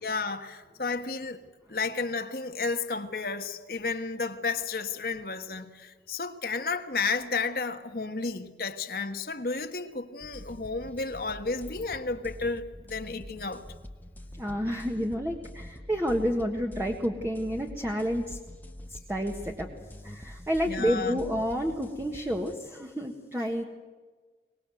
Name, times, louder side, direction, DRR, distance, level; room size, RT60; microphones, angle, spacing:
voice 1, 0.0-1.4 1.7-13.6 20.7-21.2, left 4 dB, 55° left, 1.4 m, -32 dB
sound 1, 10.2-22.6, left 1 dB, 10° left, 1.1 m, -45 dB
voice 2, 14.4-18.4 18.9-19.7 20.0-23.6, equal, 15° right, 1.6 m, -30 dB
23.5 x 20.0 x 7.9 m
head